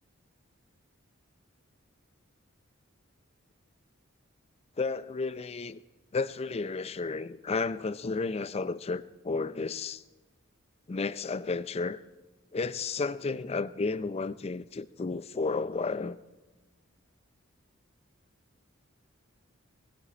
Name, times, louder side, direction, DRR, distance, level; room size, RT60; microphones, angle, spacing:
voice 1, 4.8-5.8 6.1-10.0 10.9-12.0 12.5-16.2, left 4 dB, 30° left, 16 dB, 0.4 m, -32 dB
19.5 x 16.0 x 4.3 m, 1.1 s
head